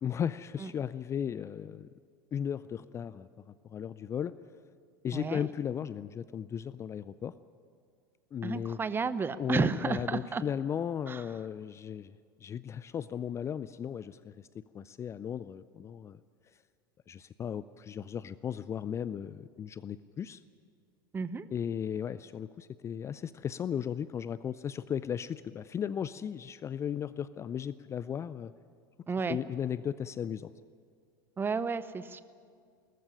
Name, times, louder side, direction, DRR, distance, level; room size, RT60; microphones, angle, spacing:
voice 1, 0.0-1.9 2.3-3.3 3.6-4.3 5.0-7.3 8.3-8.8 9.4-12.1 12.4-16.2 17.1-20.4 21.5-28.5 29.3-30.5, left 8 dB, 25° left, 17 dB, 0.4 m, -36 dB
voice 2, 5.1-5.5 8.4-10.4 11.1-11.2 21.1-21.5 29.1-29.4 31.4-32.2, right 5 dB, 20° right, 15 dB, 0.8 m, -32 dB
19.5 x 14.5 x 9.9 m, 2.2 s
figure-of-eight pair, 80°, 11 cm